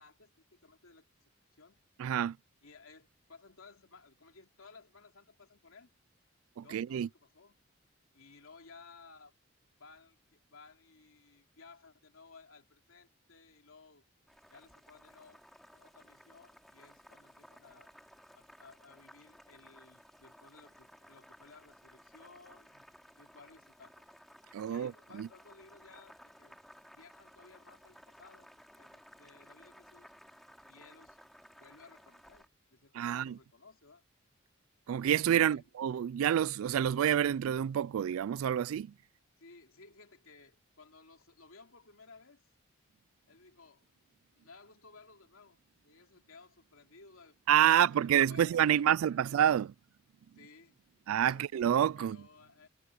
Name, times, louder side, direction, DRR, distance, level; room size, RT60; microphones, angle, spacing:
voice 1, 0.0-1.8 2.6-5.9 6.6-7.6 8.1-9.3 9.8-14.0 14.5-15.4 15.7-17.9 18.3-22.9 23.2-24.0 24.6-26.6 26.9-30.1 30.7-31.2 31.6-34.0 35.4-35.7 39.4-42.5 43.3-43.9 44.4-45.6 45.8-47.4 47.6-49.3 50.3-50.8 51.2-51.5 51.9-52.7, left 4 dB, 90° left, 2.9 m, -58 dB
voice 2, 2.0-2.4 6.6-7.1 24.5-24.9 25.2-25.3 33.0-33.3 34.9-38.9 47.5-49.7 51.1-52.2, right 10 dB, 85° right, 0.3 m, -28 dB
Boiling, 14.3-32.5, equal, ahead, 5.7 m, -58 dB
head